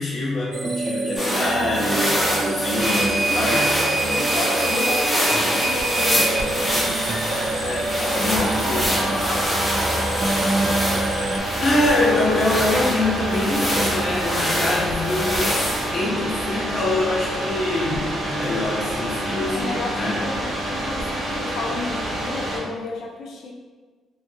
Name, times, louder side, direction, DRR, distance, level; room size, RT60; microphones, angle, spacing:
voice 1, 0.0-3.8 7.5-8.9 10.5-11.0 11.6-20.2, left 2 dB, 50° left, -5 dB, 0.8 m, -25 dB
sound 1, 0.5-11.4, right 2 dB, 35° right, 0.3 m, -27 dB
sound 2, 1.2-16.0, equal, 10° left, 0.9 m, -25 dB
sound 3, 2.8-22.6, right 1 dB, 75° right, 1.1 m, -28 dB
voice 2, 3.1-3.5 3.8-6.7 8.1-9.5 19.5-23.5, left 3 dB, 70° left, 1 dB, 0.5 m, -32 dB
2.7 x 2.3 x 2.5 m, 1.4 s
cardioid pair, 90°, 0 cm